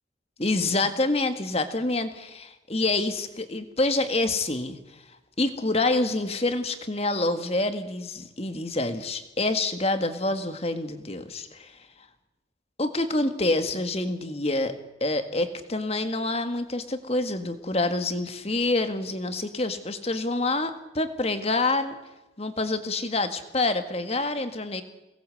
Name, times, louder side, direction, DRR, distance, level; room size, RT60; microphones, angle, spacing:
voice 1, 0.4-4.8 5.4-11.8 12.8-22.0 22.4-24.8, left 2 dB, 30° left, 8 dB, 1.8 m, -27 dB
23.5 x 19.5 x 7.9 m, 1.0 s
head